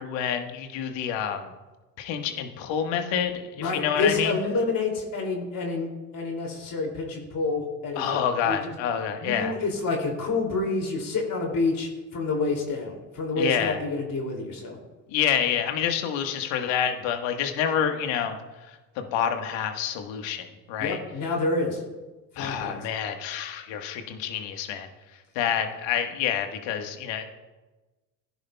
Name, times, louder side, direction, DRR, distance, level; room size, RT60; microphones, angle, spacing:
voice 1, 0.0-1.5 2.0-4.4 8.0-9.5 13.4-13.8 15.1-18.4 19.0-21.0 22.4-24.9 25.3-27.2, left 8 dB, 65° left, 6 dB, 1.5 m, -28 dB
voice 2, 3.6-5.9 6.1-8.7 9.2-14.8 20.8-21.8 22.3-22.8, left 3 dB, 45° left, 1 dB, 2.7 m, -28 dB
17.0 x 10.5 x 2.3 m, 1.2 s
hypercardioid pair, 75°, 48 cm